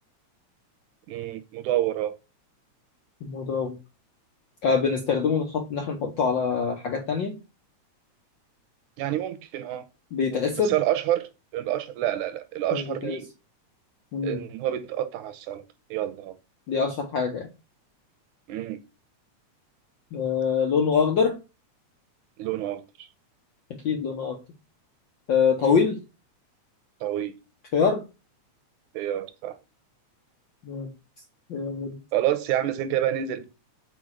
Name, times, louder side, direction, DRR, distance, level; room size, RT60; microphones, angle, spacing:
voice 1, 1.1-2.2 9.0-9.9 10.3-13.3 14.2-15.6 15.9-16.4 18.5-18.8 22.4-23.1 25.6-25.8 27.0-27.3 28.9-29.6 32.1-33.5, right 12 dB, 80° right, 2.3 m, -28 dB
voice 2, 3.2-3.8 4.6-7.4 10.1-10.8 12.7-13.2 14.1-14.4 16.7-17.5 20.1-21.4 23.7-24.4 25.3-26.0 27.7-28.0 30.6-30.9 31.5-32.0, left 6 dB, 75° left, 1.0 m, -25 dB
5.3 x 4.6 x 6.3 m
omnidirectional pair, 3.4 m